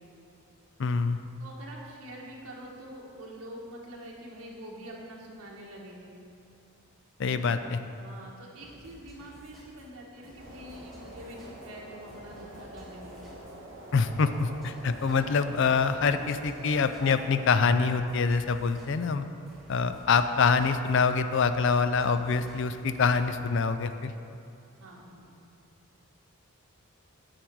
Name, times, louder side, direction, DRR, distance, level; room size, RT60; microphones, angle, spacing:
voice 1, 0.8-1.2 7.2-7.8 13.9-19.2 19.7-24.1, left 5 dB, 55° left, 10 dB, 0.4 m, -25 dB
voice 2, 1.4-6.1 7.3-7.6 8.0-13.3 24.8-25.4, right 1 dB, 80° right, -3 dB, 1.4 m, -45 dB
sound 1, 8.6-23.4, equal, ahead, 1.5 m, -53 dB
Wind medium to strong gusts in remote countryside (France), 10.4-17.5, right 1 dB, 55° right, 1.9 m, -46 dB
8.8 x 6.5 x 4.6 m, 2.5 s
head